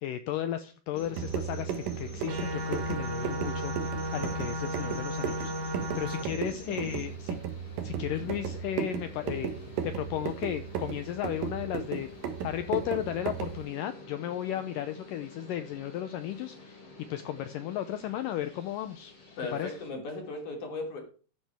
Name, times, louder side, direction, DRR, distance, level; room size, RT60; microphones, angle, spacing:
voice 1, 0.0-7.4 7.8-12.1 12.4-19.1 19.5-19.7, left 11 dB, 85° left, 10 dB, 1.9 m, -35 dB
sound 1, 0.9-19.9, left 2 dB, 30° left, 4.2 m, -48 dB
sound 2, 1.0-13.6, right 8 dB, 65° right, 2.8 m, -36 dB
sound 3, 2.3-6.2, equal, 50° right, 2.0 m, -34 dB
voice 2, 6.2-7.0 8.0-8.3 19.4-21.0, left 2 dB, 50° left, 1 dB, 4.2 m, -38 dB
14.5 x 9.4 x 3.6 m, 0.38 s
omnidirectional pair, 4.7 m